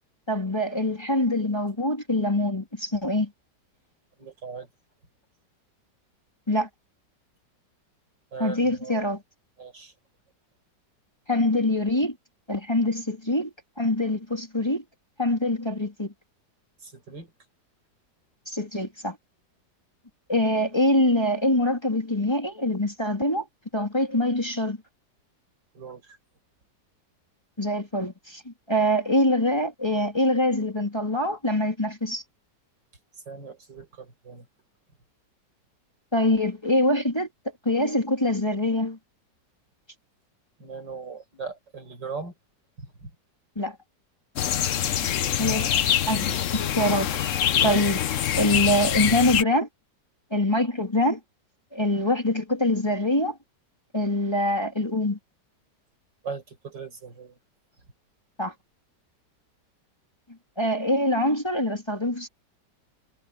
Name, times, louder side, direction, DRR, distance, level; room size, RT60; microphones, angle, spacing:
voice 1, 0.3-3.3 6.5-6.7 8.4-9.2 11.3-12.1 12.5-13.5 13.8-14.8 15.2-16.1 18.5-19.2 20.3-23.5 23.7-24.8 27.6-32.2 36.1-37.3 37.6-39.0 43.6-43.8 45.4-45.7 46.1-48.0 48.3-49.7 50.3-51.2 51.7-53.4 53.9-55.2 58.4-58.5 60.6-62.3, left 1 dB, 15° left, 2.9 m, -24 dB
voice 2, 4.2-4.7 8.3-9.0 9.6-9.9 16.8-17.3 25.7-26.2 33.3-34.5 40.6-42.3 42.8-43.1 45.2-45.7 46.3-46.4 56.2-57.4, right 5 dB, 80° right, 6.0 m, -39 dB
sound 1, 44.4-49.4, left 10 dB, 55° left, 1.0 m, -25 dB
omnidirectional pair, 1.9 m